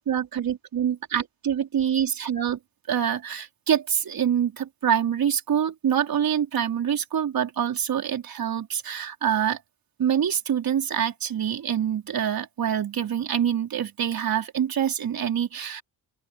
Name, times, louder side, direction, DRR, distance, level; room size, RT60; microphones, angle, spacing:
voice 1, 0.1-2.6 2.9-9.6 10.0-15.8, right 9 dB, 65° right, 4.9 m, -25 dB
open air
cardioid pair, 95°, 37 cm